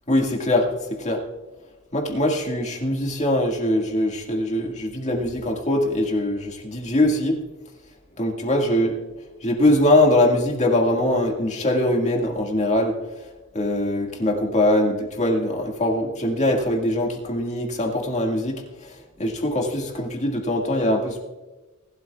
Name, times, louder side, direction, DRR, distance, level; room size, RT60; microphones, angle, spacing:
voice 1, 0.1-0.7 1.0-1.2 1.9-7.4 8.2-8.9 9.4-12.9 13.5-18.6 19.2-21.2, left 1 dB, 35° left, 0 dB, 1.9 m, -22 dB
19.5 x 12.0 x 2.4 m, 1.2 s
head